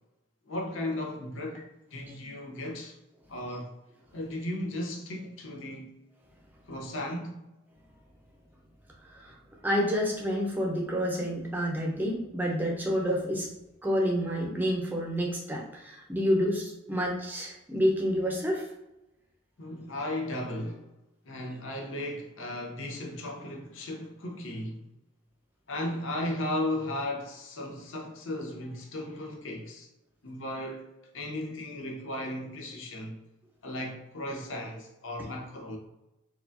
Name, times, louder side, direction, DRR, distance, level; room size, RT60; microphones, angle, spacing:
voice 1, 0.5-3.0 3.3-3.7 4.1-5.9 6.7-7.5 19.6-20.8 21.2-24.9 25.7-29.9 30.2-30.8 31.1-33.2 33.6-35.8, left 1 dB, 75° left, 0.8 m, -35 dB
voice 2, 9.6-13.5 13.8-18.6, equal, 10° right, 0.6 m, -28 dB
4.6 x 2.4 x 2.6 m
head